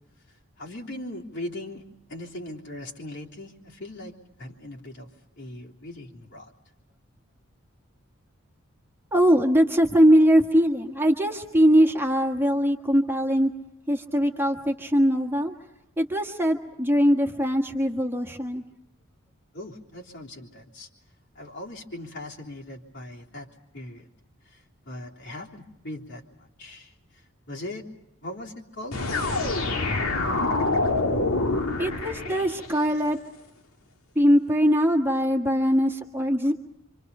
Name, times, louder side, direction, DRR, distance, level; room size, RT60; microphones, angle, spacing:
voice 1, 0.6-1.8 2.1-4.1 4.4-5.1 5.4-6.5 19.5-20.9 21.4-23.5 23.7-24.1 24.9-26.2 26.6-26.9 27.5-27.8 28.2-29.0, left 1 dB, 55° left, -2 dB, 3.5 m, -39 dB
voice 2, 9.1-13.5 13.9-15.5 16.0-18.6 31.8-33.2 34.1-36.5, equal, 10° right, 2 dB, 1.6 m, -21 dB
sound 1, 28.9-32.8, left 2 dB, 90° left, 2.5 m, -26 dB
27.5 x 26.0 x 5.6 m, 0.91 s
head